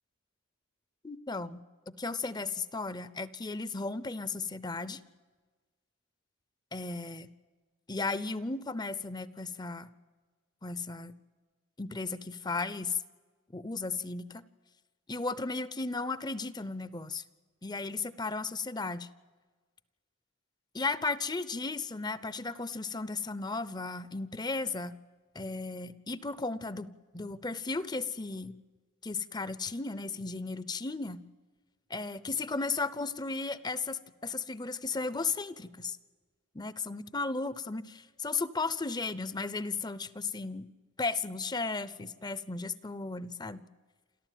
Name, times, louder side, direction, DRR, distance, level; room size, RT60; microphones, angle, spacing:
voice 1, 1.0-5.0 6.7-7.3 7.9-9.9 10.6-11.2 11.8-13.0 13.5-14.4 15.1-17.2 17.6-19.1 20.7-24.9 25.3-26.9 27.1-28.6 29.0-31.2 31.9-36.0 36.5-40.7 41.0-43.6, left 3 dB, 20° left, 17 dB, 0.7 m, -35 dB
28.5 x 13.5 x 9.2 m, 1.4 s
head